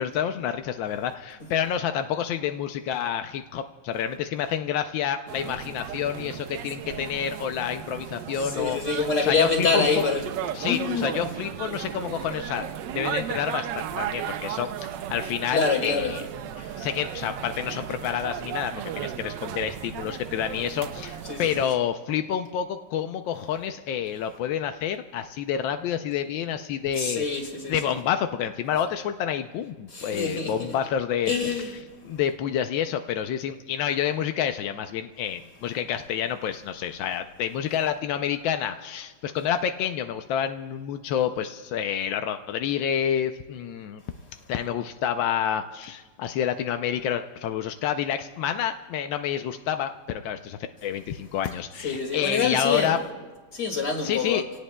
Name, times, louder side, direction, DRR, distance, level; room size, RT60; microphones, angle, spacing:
voice 1, 0.0-9.9 10.5-12.6 12.9-16.2 16.6-27.2 27.7-31.6 32.0-44.0 44.5-53.0 54.0-54.4, left 9 dB, 85° left, 1.4 m, -28 dB
sound 1, 5.3-21.7, right 10 dB, 75° right, 1.2 m, -35 dB
voice 2, 8.4-10.2 10.6-11.1 15.5-16.1 16.7-16.9 21.3-21.7 26.9-27.9 29.9-30.7 31.3-31.7 51.8-53.0 53.5-54.4, left 4 dB, 40° left, 2.5 m, -26 dB
27.5 x 18.0 x 2.2 m
omnidirectional pair, 2.0 m